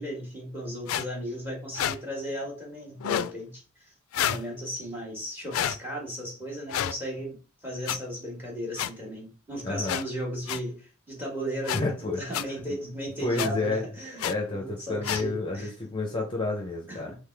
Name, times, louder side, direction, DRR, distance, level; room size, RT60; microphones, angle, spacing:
voice 1, 0.0-3.9 4.1-7.4 7.6-11.9 12.2-15.7 16.9-17.2, equal, 10° right, -2 dB, 1.6 m, -35 dB
sound 1, 0.9-1.0 1.7-2.0 3.0-3.3 4.1-4.4 5.5-5.8 6.7-6.9 7.9-8.0 8.8-8.9 9.9-10.0 10.5-10.6 11.6-11.8 12.3-12.4 13.4-13.5 14.2-14.3 15.0-15.2, left 10 dB, 80° left, 0.3 m, -28 dB
voice 2, 9.6-10.0 11.7-12.6 13.2-13.8 14.2-17.1, left 3 dB, 25° left, 1 dB, 0.6 m, -30 dB
3.9 x 3.2 x 3.3 m, 0.35 s
head